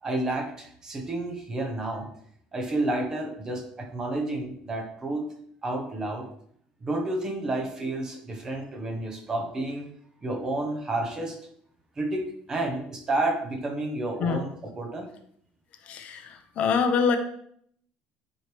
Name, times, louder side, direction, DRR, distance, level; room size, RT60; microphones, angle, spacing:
voice 1, 0.0-2.1 2.5-5.3 5.6-6.3 6.8-9.9 10.2-11.4 12.0-15.1, right 2 dB, 20° right, 3 dB, 1.1 m, -30 dB
voice 2, 15.8-17.2, left 6 dB, 45° left, 7 dB, 0.7 m, -25 dB
10.0 x 4.6 x 3.4 m, 0.67 s
cardioid pair, 175°, 3 cm